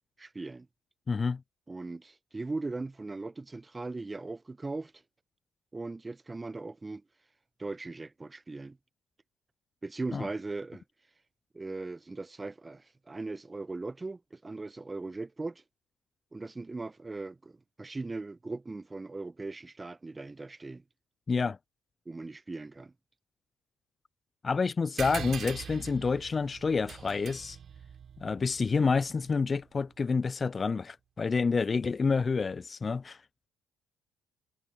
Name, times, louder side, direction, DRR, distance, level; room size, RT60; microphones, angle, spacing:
voice 1, 0.2-0.7 1.7-4.9 5.7-7.0 7.6-8.8 9.8-10.8 11.5-15.6 16.3-20.8 22.1-22.9, right 3 dB, 25° right, 0.8 m, -39 dB
voice 2, 1.1-1.4 10.1-10.3 21.3-21.6 24.4-27.6 28.2-33.2, left 4 dB, 35° left, 0.3 m, -28 dB
sound 1, 25.0-29.9, right 8 dB, 50° right, 3.5 m, -43 dB
hypercardioid pair, 50°, 0 cm